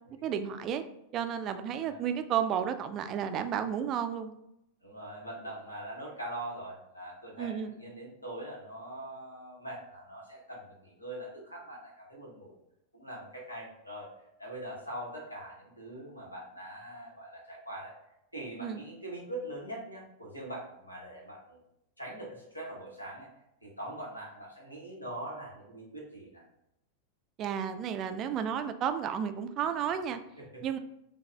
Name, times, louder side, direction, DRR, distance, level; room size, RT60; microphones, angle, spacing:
voice 1, 0.2-0.8 1.1-4.3 7.4-7.7 18.6-18.8 27.4-30.2 30.6-30.8, right 8 dB, 35° right, 9 dB, 0.3 m, -32 dB
voice 2, 1.7-2.1 4.8-12.5 12.9-14.1 14.4-17.9 18.3-21.6 22.0-23.3 23.6-26.4 30.4-30.6, right 1 dB, 85° left, -2 dB, 1.2 m, -42 dB
5.4 x 2.3 x 3.3 m, 0.83 s
figure-of-eight pair, 90°, 0 cm